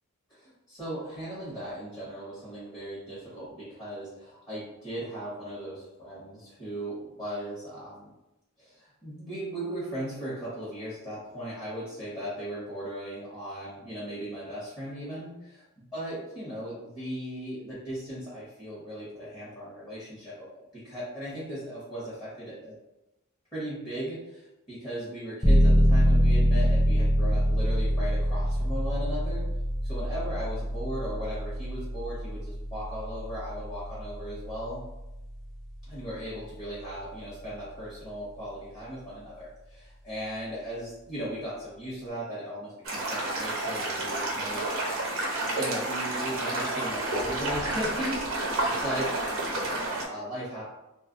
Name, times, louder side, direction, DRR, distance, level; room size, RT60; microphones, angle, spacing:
voice 1, 0.3-8.1 8.6-22.8 23.5-29.4 29.8-34.8 35.9-44.7 45.5-48.5 48.8-49.1 49.6-50.6, equal, 20° left, -11 dB, 1.0 m, -37 dB
sound 1, 25.4-36.0, equal, ahead, 0.3 m, -25 dB
sound 2, 42.8-50.0, right 2 dB, 60° right, 0.8 m, -30 dB
2.3 x 2.0 x 3.7 m, 0.93 s
head